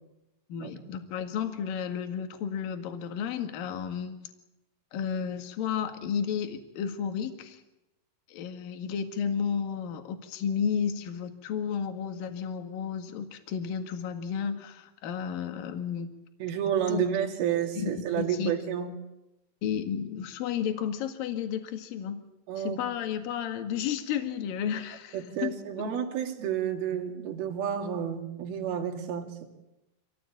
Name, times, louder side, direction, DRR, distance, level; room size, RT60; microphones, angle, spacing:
voice 1, 0.5-4.2 4.9-7.6 8.3-16.1 16.9-17.0 17.8-18.6 19.6-22.2 22.6-25.9, left 7 dB, 55° left, 6 dB, 3.0 m, -32 dB
voice 2, 16.4-18.9 22.5-22.8 25.1-29.5, right 9 dB, 55° right, 2 dB, 3.9 m, -30 dB
26.5 x 17.5 x 8.7 m, 0.94 s
omnidirectional pair, 5.8 m